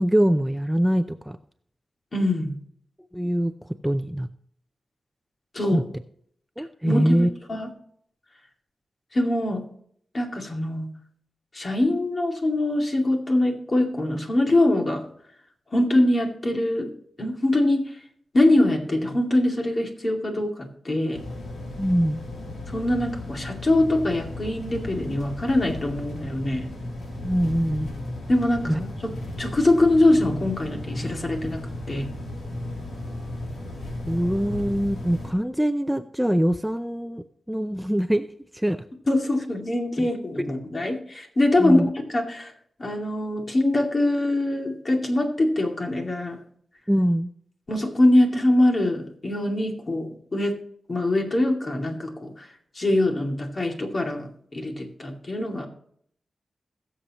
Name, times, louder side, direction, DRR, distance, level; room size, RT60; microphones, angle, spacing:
voice 1, 0.0-1.4 3.1-3.5 3.8-4.3 5.7-5.8 6.6-7.3 21.8-22.2 27.2-28.1 28.7-28.8 34.1-38.3 38.5-38.8 40.0-40.1 41.6-41.9 46.9-47.3, equal, 5° right, 9 dB, 0.5 m, -23 dB
voice 2, 2.1-2.5 5.5-5.8 6.6-7.7 9.1-9.6 10.1-10.9 11.5-15.0 15.7-16.9 17.2-18.0 18.3-21.2 22.7-26.7 28.3-28.7 29.0-29.1 29.4-32.1 39.1-41.8 42.1-42.5 42.8-46.4 47.7-50.6 50.9-52.5 52.7-55.7, left 1 dB, 45° left, 2 dB, 2.3 m, -23 dB
sound 1, 21.1-35.3, left 1 dB, 75° left, 3.0 m, -35 dB
21.0 x 7.0 x 3.0 m, 0.65 s
wide cardioid pair, 80°, 0 cm